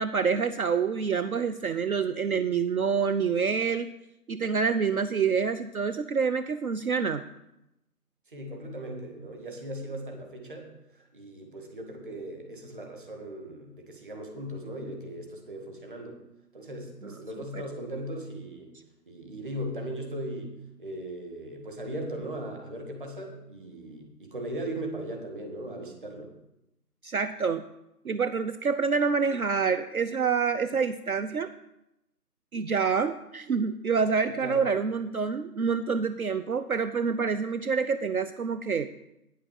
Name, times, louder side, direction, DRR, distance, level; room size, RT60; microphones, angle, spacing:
voice 1, 0.0-3.9 4.3-7.2 17.5-17.6 27.0-27.6 28.0-31.5 32.5-38.9, right 5 dB, 60° right, 10 dB, 0.6 m, -27 dB
voice 2, 8.3-16.2 16.5-18.7 19.1-26.3 34.4-34.7, right 1 dB, 30° right, 2 dB, 1.7 m, -38 dB
9.0 x 7.5 x 6.4 m, 0.88 s
figure-of-eight pair, 170°, 48 cm